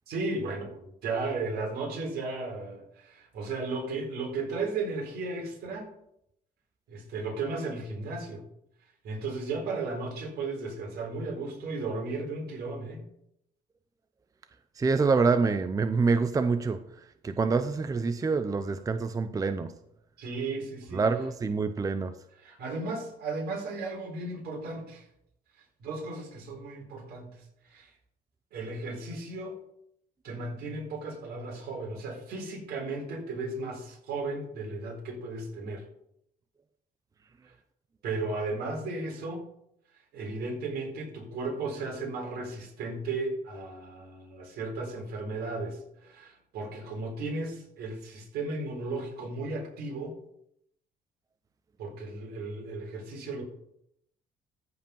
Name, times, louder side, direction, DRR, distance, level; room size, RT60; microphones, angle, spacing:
voice 1, 0.1-5.9 6.9-8.4 9.0-13.0 20.2-21.1 22.4-25.0 25.8-27.9 28.5-29.6 30.2-35.9 38.0-39.5 40.1-50.2 51.8-53.4, right 3 dB, 70° right, 0 dB, 4.4 m, -35 dB
voice 2, 14.8-19.7 20.9-22.1, right 4 dB, 20° right, 10 dB, 0.6 m, -26 dB
14.0 x 5.2 x 5.5 m, 0.75 s
cardioid pair, 110°, 17 cm